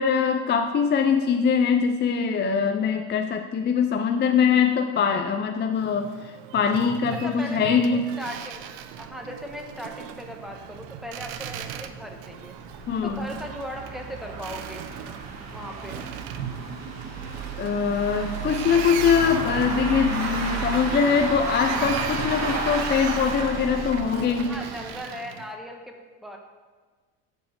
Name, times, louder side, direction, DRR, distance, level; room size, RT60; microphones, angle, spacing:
voice 1, 0.0-8.1 12.9-13.3 17.6-24.5, left 6 dB, 30° left, 4 dB, 0.6 m, -23 dB
Boat Water vehicle, 5.7-25.5, right 9 dB, 85° right, 0.7 m, -39 dB
voice 2, 7.1-12.6 13.0-14.9 15.5-16.0 24.5-26.4, equal, ahead, 2 dB, 1.2 m, -38 dB
sound 1, 8.5-8.6 8.9-9.0 9.4-9.5 9.8-9.9 10.6-24.9, right 3 dB, 45° right, 2.1 m, -32 dB
7.6 x 4.7 x 6.9 m, 1.4 s
supercardioid pair, 110°, 37 cm